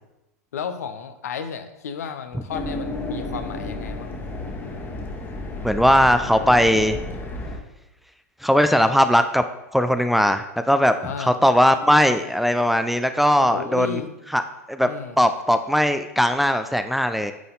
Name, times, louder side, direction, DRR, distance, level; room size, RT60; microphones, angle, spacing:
voice 1, 0.5-4.2 11.0-11.4 13.5-14.1 14.8-15.2, left 6 dB, 70° left, 9 dB, 0.7 m, -33 dB
sound 1, 2.5-7.6, left 2 dB, 25° left, 1.3 m, -32 dB
voice 2, 5.6-7.0 8.4-9.4 9.7-10.9 11.2-14.0 14.3-14.4 14.7-14.9 15.2-17.3, equal, ahead, 8 dB, 0.4 m, -19 dB
9.4 x 4.1 x 3.9 m, 0.91 s
figure-of-eight pair, 95°, 9 cm